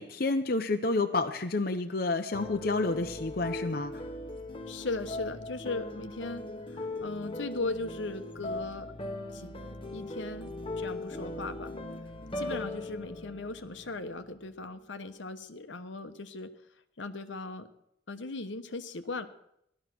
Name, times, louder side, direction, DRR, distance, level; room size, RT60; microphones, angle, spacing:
voice 1, 0.0-4.0, left 3 dB, 50° left, 5 dB, 0.8 m, -29 dB
sound 1, 2.3-14.5, left 2 dB, 25° left, 1.2 m, -39 dB
voice 2, 4.6-6.4 6.7-8.9 9.3-9.5 9.9-10.5 10.8-11.7 12.4-16.5 17.0-17.7 18.1-19.3, left 3 dB, 80° left, 8 dB, 1.1 m, -38 dB
18.0 x 12.5 x 6.1 m, 0.76 s
head